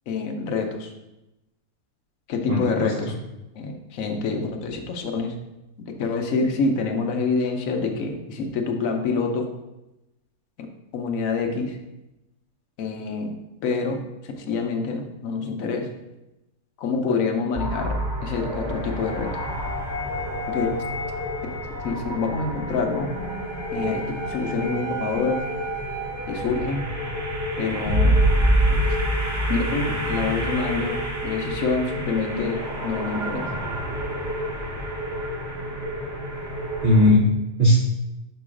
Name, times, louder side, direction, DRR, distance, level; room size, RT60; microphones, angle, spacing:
voice 1, 0.1-0.9 2.3-3.1 3.6-5.3 6.0-9.4 10.9-11.8 12.8-13.3 13.6-15.9 16.8-18.0 18.2-19.3 20.5-20.7 21.8-23.1 23.7-24.0 24.3-25.4 26.3-26.8 27.6-28.1 29.5-33.4, left 4 dB, 65° left, 4 dB, 1.1 m, -26 dB
voice 2, 2.5-2.9 36.8-37.8, left 1 dB, 60° right, -2 dB, 0.5 m, -18 dB
sound 1, 17.5-37.1, equal, 15° right, 0.7 m, -27 dB
6.5 x 3.0 x 4.8 m, 0.95 s
omnidirectional pair, 1.7 m